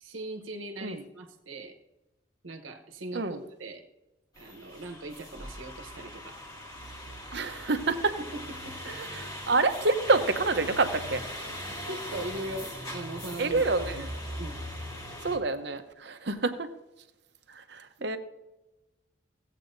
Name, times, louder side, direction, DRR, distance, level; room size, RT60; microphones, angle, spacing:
voice 1, 0.0-1.7 2.4-3.8 4.4-6.4 8.2-8.9 11.9-13.9 14.4-14.6 18.0-18.1, right 1 dB, 85° right, 4 dB, 1.1 m, -40 dB
sound 1, 4.4-15.4, left 1 dB, 20° left, 1.4 m, -40 dB
voice 2, 7.3-8.2 8.9-11.2 13.4-14.1 15.2-16.7 17.5-18.2, right 3 dB, 55° right, 8 dB, 0.8 m, -28 dB
16.5 x 8.3 x 2.6 m, 1.0 s
head